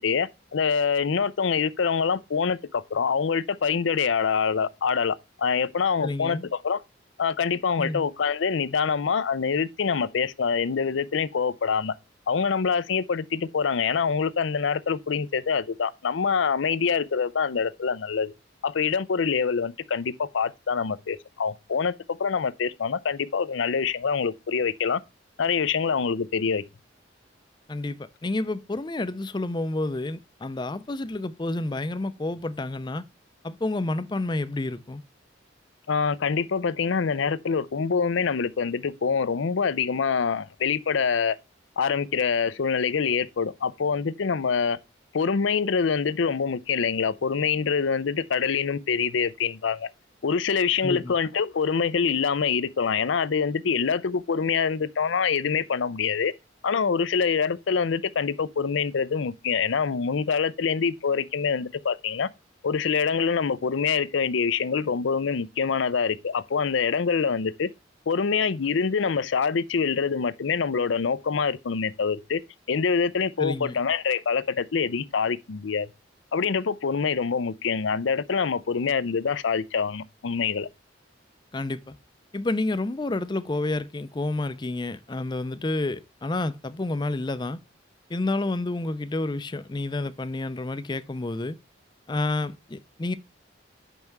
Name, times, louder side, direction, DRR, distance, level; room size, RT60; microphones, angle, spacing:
voice 1, 0.0-6.8 7.2-11.9 12.3-18.3 18.6-21.9 22.2-25.0 25.4-26.6 35.9-41.4 41.8-44.8 45.1-49.9 50.2-56.3 56.6-62.3 62.6-67.7 68.1-72.4 72.7-75.9 76.3-80.7, left 6 dB, 80° left, 0.5 m, -25 dB
voice 2, 6.0-6.5 7.8-8.1 27.7-33.1 33.4-35.0 50.8-51.2 73.4-73.8 81.5-82.0 82.3-87.6 88.1-91.6 92.1-93.1, left 2 dB, 25° left, 0.4 m, -29 dB
6.6 x 5.5 x 4.6 m
head